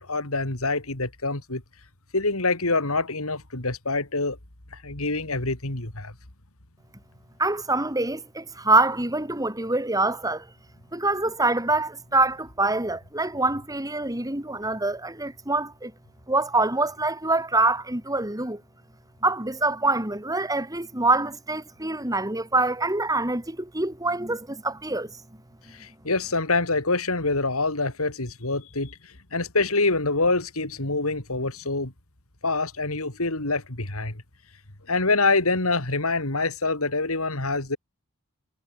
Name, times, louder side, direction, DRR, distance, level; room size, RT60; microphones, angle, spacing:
voice 1, 0.0-1.6 2.1-4.4 4.7-6.1 25.7-29.0 29.3-31.9 32.4-34.1 34.9-37.8, left 3 dB, 70° left, 3.5 m, -25 dB
voice 2, 7.4-10.4 10.9-15.9 16.3-18.6 19.2-25.1, right 2 dB, 15° right, 3.4 m, -25 dB
head